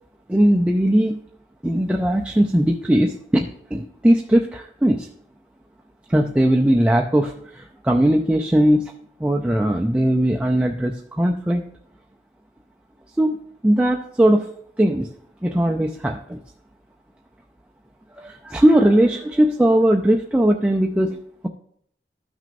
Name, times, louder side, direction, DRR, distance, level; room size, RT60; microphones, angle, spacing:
voice 1, 0.3-1.2 1.6-5.1 6.1-8.9 9.2-11.6 13.2-13.4 13.6-14.5 14.8-15.1 15.4-16.4 18.2-21.5, right 1 dB, 5° right, 1 dB, 0.3 m, -19 dB
13.0 x 6.1 x 2.6 m, 0.67 s
head